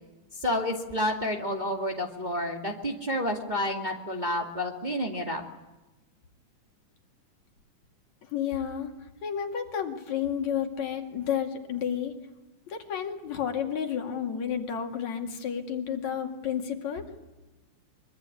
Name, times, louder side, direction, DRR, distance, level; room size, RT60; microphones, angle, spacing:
voice 1, 0.4-5.4, left 1 dB, 15° right, 1 dB, 2.1 m, -30 dB
voice 2, 8.3-8.9 9.2-12.1 12.7-17.1, left 8 dB, 65° left, 4 dB, 3.5 m, -31 dB
24.0 x 24.0 x 9.8 m, 1.1 s
omnidirectional pair, 3.6 m